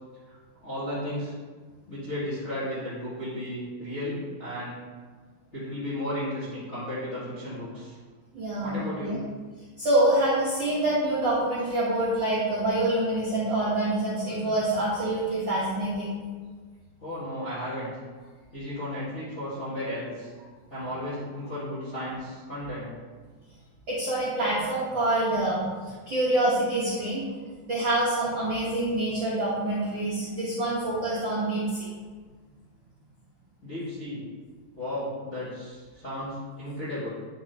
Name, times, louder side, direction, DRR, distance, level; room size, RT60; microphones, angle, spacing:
voice 1, 0.3-1.3 1.9-4.7 5.5-8.0 8.6-9.2 17.0-17.9 18.5-20.3 20.7-22.9 33.6-34.2 34.7-37.1, left 1 dB, 40° left, -10 dB, 1.0 m, -34 dB
voice 2, 8.3-9.2 9.8-16.2 23.9-27.3 27.7-31.9, right 1 dB, 60° right, -8 dB, 1.2 m, -26 dB
9.2 x 5.0 x 2.9 m, 1.5 s
omnidirectional pair, 4.1 m